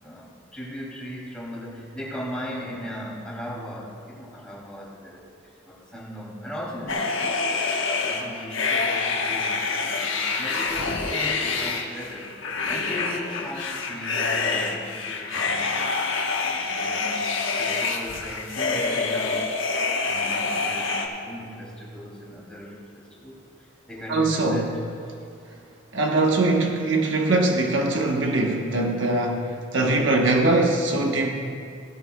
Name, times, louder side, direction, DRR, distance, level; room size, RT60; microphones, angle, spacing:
voice 1, 0.0-5.3 5.7-7.5 8.0-12.3 12.7-15.7 16.4-19.5 20.0-24.7 25.1-25.3 26.1-26.3, equal, 5° left, -6 dB, 2.7 m, -38 dB
sound 1, 6.9-21.1, left 4 dB, 90° left, 1.2 m, -26 dB
voice 2, 24.1-24.7 25.9-31.3, right 2 dB, 75° right, 1 dB, 1.1 m, -22 dB
16.5 x 13.0 x 2.3 m, 2.4 s
head